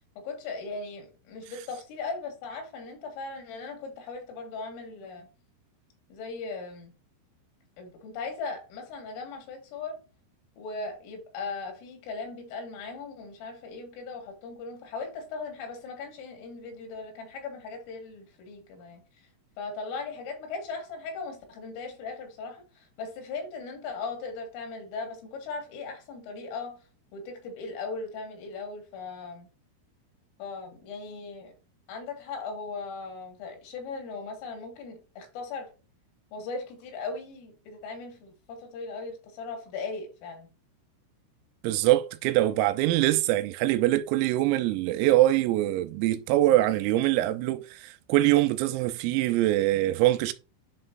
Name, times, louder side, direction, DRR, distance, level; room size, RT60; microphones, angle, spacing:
voice 1, 0.2-5.3 6.1-6.9 7.8-10.0 10.6-19.0 19.6-26.8 27.1-29.5 30.4-31.5 31.9-35.7 36.3-40.5, left 4 dB, 80° left, 4.1 m, -38 dB
voice 2, 41.6-50.3, right 15 dB, 85° right, 3.3 m, -23 dB
11.0 x 3.8 x 2.6 m
omnidirectional pair, 5.9 m